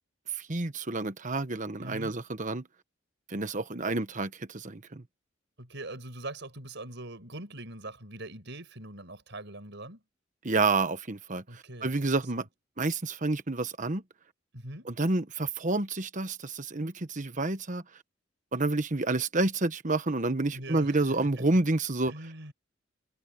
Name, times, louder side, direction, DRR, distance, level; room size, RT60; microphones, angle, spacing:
voice 1, 0.4-2.7 3.3-5.0 10.4-12.5 12.8-14.0 14.8-17.8 18.5-22.1, right 2 dB, 40° right, 1.2 m, -29 dB
voice 2, 1.8-2.1 3.9-4.0 5.6-10.0 11.5-11.9 14.5-14.9 20.5-21.0 22.1-22.5, right 2 dB, 60° right, 7.1 m, -42 dB
head